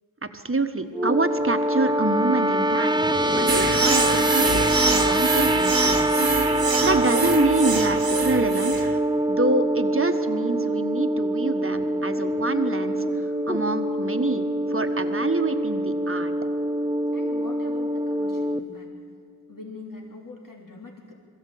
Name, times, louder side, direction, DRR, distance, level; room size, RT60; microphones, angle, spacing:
voice 1, 0.2-6.2 6.6-8.9 9.3-13.0 13.5-16.3, right 2 dB, 30° right, 7 dB, 1.5 m, -27 dB
sound 1, 0.9-18.6, right 1 dB, 10° right, 0.7 m, -24 dB
sound 2, 2.9-4.6, left 2 dB, 20° left, 0.9 m, -34 dB
sound 3, 3.5-9.0, right 4 dB, 60° right, 1.6 m, -25 dB
voice 2, 17.1-18.9 19.5-21.1, left 2 dB, 55° left, 0 dB, 3.2 m, -42 dB
22.0 x 15.0 x 8.7 m, 2.3 s
wide cardioid pair, 55°, 40 cm